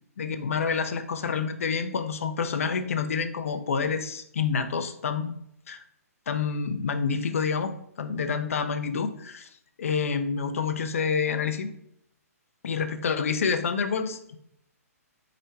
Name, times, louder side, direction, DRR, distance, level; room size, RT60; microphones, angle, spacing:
voice 1, 0.2-5.3 5.7-5.8 6.3-9.5 9.8-11.7 12.6-14.4, left 5 dB, 60° left, 9 dB, 0.5 m, -28 dB
4.9 x 2.2 x 4.3 m, 0.72 s
figure-of-eight pair, 125°, 9 cm